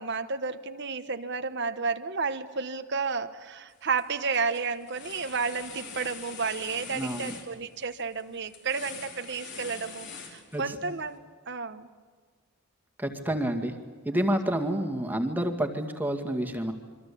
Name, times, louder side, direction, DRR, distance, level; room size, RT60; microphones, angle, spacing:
voice 1, 0.0-11.2 11.5-11.9 14.1-14.2, right 5 dB, 50° right, 9 dB, 1.2 m, -32 dB
sound 1, 3.7-4.0 4.3-10.9, left 5 dB, 55° left, 4.8 m, -44 dB
voice 2, 6.9-7.3 10.5-10.9 13.0-13.8 14.1-16.7, right 1 dB, 10° right, 4 dB, 2.1 m, -29 dB
27.5 x 24.5 x 8.6 m, 1.5 s
head